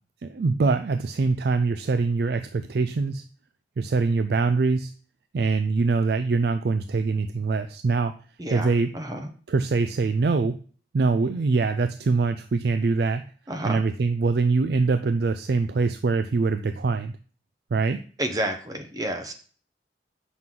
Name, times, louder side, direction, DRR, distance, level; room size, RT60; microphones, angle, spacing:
voice 1, 0.2-3.2 3.8-4.9 5.3-8.1 8.5-8.9 9.5-10.6 10.9-13.2 13.6-17.1 17.7-18.0, right 4 dB, 60° right, 9 dB, 0.4 m, -23 dB
voice 2, 8.9-9.3 13.5-13.8 18.2-19.3, right 1 dB, 20° right, 6 dB, 0.7 m, -30 dB
7.6 x 6.1 x 3.7 m, 0.41 s
head